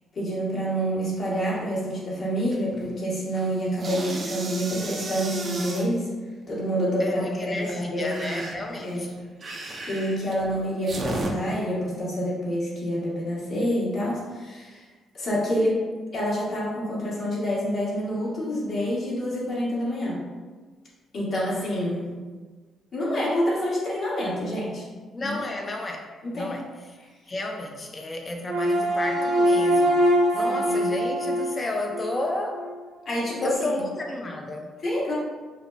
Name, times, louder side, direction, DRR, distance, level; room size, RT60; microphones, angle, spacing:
voice 1, 0.1-6.1 6.5-8.5 8.8-9.0 9.9-14.8 15.1-20.2 21.1-22.2 22.9-24.8 25.2-25.4 26.2-26.6 30.4-30.8 33.0-33.6 34.8-35.1, equal, 55° left, -7 dB, 1.4 m, -27 dB
sound 1, 2.5-2.9 3.2-5.9 7.5-11.3, right 2 dB, 45° right, 0.5 m, -34 dB
voice 2, 7.0-9.2 25.1-26.1 26.3-27.0 27.3-32.6 33.4-34.7, left 2 dB, 30° left, 2 dB, 0.5 m, -32 dB
sound 2, 28.5-32.8, equal, 70° right, 0.8 m, -23 dB
5.1 x 2.0 x 2.6 m, 1.4 s
cardioid pair, 90°, 0 cm